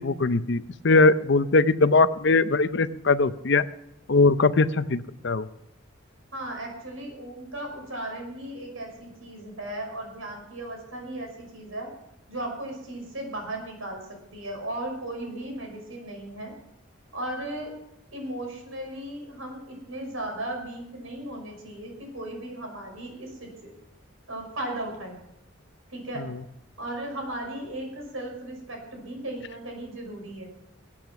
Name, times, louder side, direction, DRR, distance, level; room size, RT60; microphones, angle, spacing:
voice 1, 0.0-3.6 4.1-5.5 26.2-26.4, left 3 dB, 60° left, 13 dB, 0.6 m, -21 dB
voice 2, 6.3-11.9 12.3-16.5 17.1-17.7 18.1-23.7 24.3-25.2 25.9-26.3 26.8-30.5, right 1 dB, 80° right, 2 dB, 5.7 m, -36 dB
21.0 x 8.7 x 5.9 m, 0.84 s
head